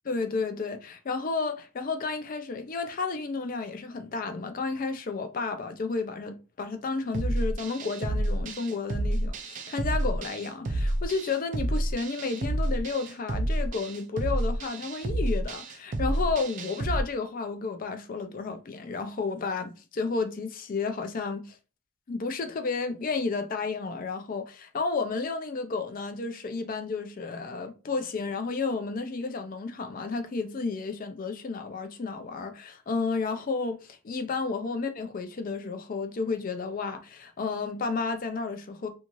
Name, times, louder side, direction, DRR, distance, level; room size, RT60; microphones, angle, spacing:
voice 1, 0.1-21.6 22.1-38.9, left 4 dB, 45° left, 0.4 m, -32 dB
sound 1, 7.1-17.0, right 1 dB, 40° right, 0.4 m, -29 dB
2.6 x 2.4 x 2.9 m
head